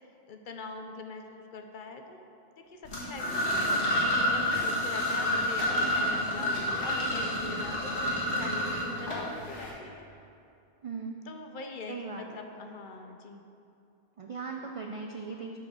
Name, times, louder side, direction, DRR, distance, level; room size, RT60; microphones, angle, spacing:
voice 1, 0.3-2.3 2.6-10.0 11.3-13.4, left 3 dB, 60° left, 5 dB, 0.6 m, -43 dB
sound 1, 2.9-9.7, left 1 dB, 75° left, 1.7 m, -29 dB
voice 2, 5.8-6.1 10.8-11.2 11.9-12.4 14.2-15.6, right 4 dB, 60° right, 2 dB, 0.3 m, -39 dB
7.1 x 4.9 x 6.2 m, 2.6 s
omnidirectional pair, 1.1 m